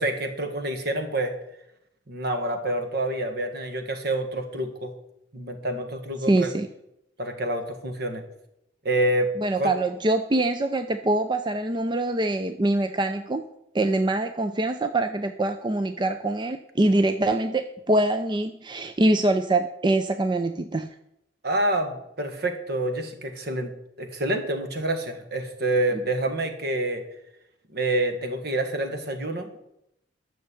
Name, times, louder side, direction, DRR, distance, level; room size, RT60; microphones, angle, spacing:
voice 1, 0.0-1.3 2.1-4.9 5.3-6.5 7.2-8.2 8.8-9.3 9.6-9.7 21.4-27.0 27.7-29.5, right 1 dB, 60° right, 6 dB, 1.8 m, -27 dB
voice 2, 6.3-6.7 9.4-13.4 13.7-20.9, right 2 dB, 25° right, 8 dB, 0.5 m, -24 dB
12.0 x 6.6 x 8.4 m, 0.83 s
head